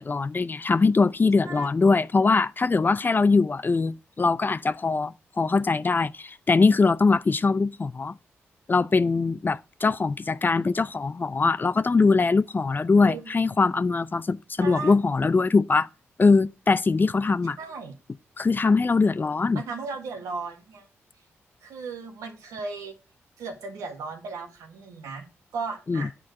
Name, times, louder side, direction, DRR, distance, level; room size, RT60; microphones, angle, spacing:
voice 1, 0.0-8.2 8.7-15.9 16.2-17.6 18.4-19.6 25.9-26.1, left 4 dB, 35° left, 0.5 m, -22 dB
voice 2, 14.6-14.9 17.6-17.9 19.5-20.9 21.6-23.0 23.4-25.3 25.5-26.1, right 4 dB, 85° right, 1.7 m, -36 dB
8.5 x 4.5 x 6.4 m
supercardioid pair, 45°, 5 cm